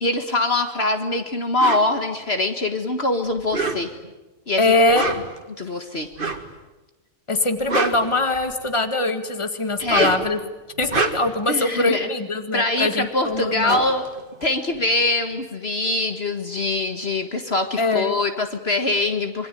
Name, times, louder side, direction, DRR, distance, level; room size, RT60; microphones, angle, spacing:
voice 1, 0.0-3.9 4.5-4.7 5.6-6.1 9.8-10.3 11.5-12.1 12.5-14.0 14.4-19.5, left 2 dB, 50° left, 7 dB, 1.9 m, -23 dB
sound 1, 1.6-1.9 3.4-4.1 4.8-5.4 6.1-6.5 7.4-8.7 9.7-10.3 10.8-11.4 13.0-13.1 13.3-15.0, right 3 dB, 40° right, 2.1 m, -26 dB
voice 2, 4.6-5.1 7.3-10.4 10.8-13.8 17.8-18.2, left 2 dB, 20° left, 8 dB, 2.0 m, -22 dB
27.0 x 24.0 x 9.3 m, 1.1 s
omnidirectional pair, 1.4 m